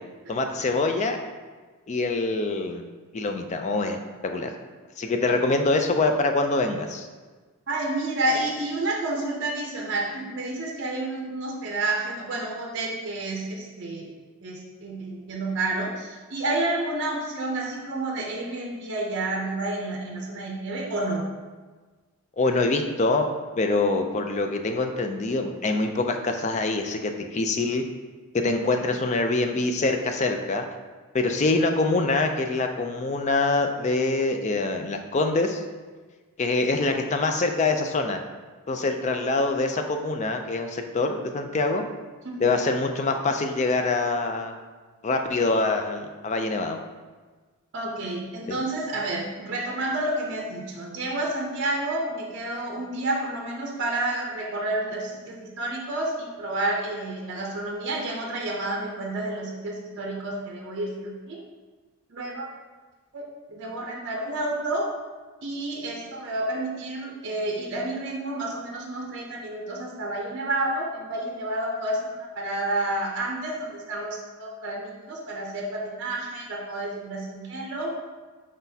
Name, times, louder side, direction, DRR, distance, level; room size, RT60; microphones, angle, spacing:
voice 1, 0.3-1.2 1.9-2.8 3.1-4.5 5.0-7.1 22.4-23.3 23.6-27.8 28.3-30.7 31.1-35.6 36.4-38.2 38.7-41.8 42.4-44.6 45.0-46.8 48.5-48.6, left 3 dB, 30° left, 5 dB, 0.3 m, -25 dB
voice 2, 7.7-14.1 14.4-21.2 42.2-42.4 47.7-61.4 62.1-62.5 63.1-63.2 63.5-64.9 65.4-77.9, right 2 dB, 55° right, -1 dB, 0.6 m, -30 dB
4.9 x 3.9 x 2.7 m, 1.3 s
head